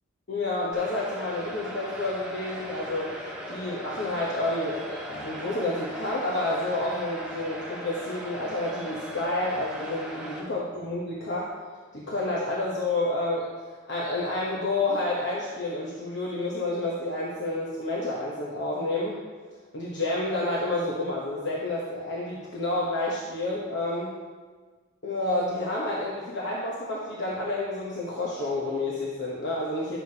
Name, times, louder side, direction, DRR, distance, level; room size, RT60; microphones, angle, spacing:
voice 1, 0.3-3.1 3.5-11.5 11.9-13.5 13.9-19.2 19.7-24.1 25.0-30.0, left 2 dB, 55° left, -5 dB, 1.0 m, -29 dB
sound 1, 0.7-10.4, equal, 5° right, 1.2 m, -38 dB
11.0 x 6.7 x 2.8 m, 1.4 s
head